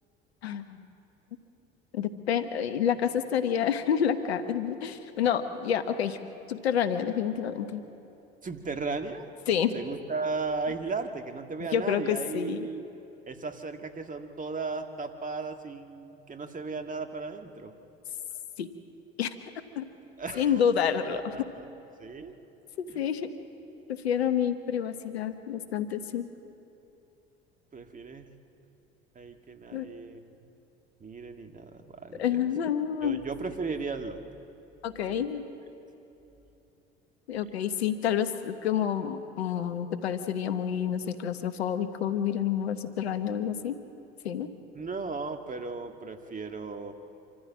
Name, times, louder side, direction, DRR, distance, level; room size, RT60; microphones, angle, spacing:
voice 1, 0.4-0.8 1.9-6.2 6.5-7.8 9.5-9.7 11.7-12.7 18.6-18.7 19.2-19.3 19.8-19.9 20.3-21.3 22.8-23.3 23.9-26.3 29.7-29.9 32.2-33.2 34.8-35.5 37.3-43.8 44.2-44.5, left 8 dB, 80° left, 10 dB, 1.1 m, -28 dB
voice 2, 8.4-9.3 9.7-12.8 13.2-17.7 20.2-20.6 21.1-21.7 22.0-22.4 22.9-23.0 27.7-28.3 29.2-30.4 31.0-32.4 33.0-34.2 35.1-35.2 44.8-46.9, right 4 dB, 25° right, 5 dB, 1.8 m, -36 dB
26.5 x 14.0 x 7.4 m, 3.0 s
hypercardioid pair, 65°, 31 cm